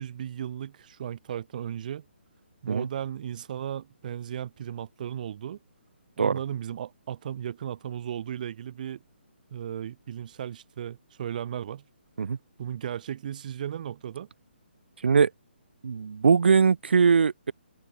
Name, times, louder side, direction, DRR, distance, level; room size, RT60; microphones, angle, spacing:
voice 1, 0.0-2.1 2.6-5.6 6.2-9.0 9.5-11.8 12.6-14.3, right 10 dB, 45° right, 5.3 m, -35 dB
voice 2, 15.8-17.5, right 5 dB, 65° right, 2.1 m, -21 dB
open air
figure-of-eight pair, 145°, 6 cm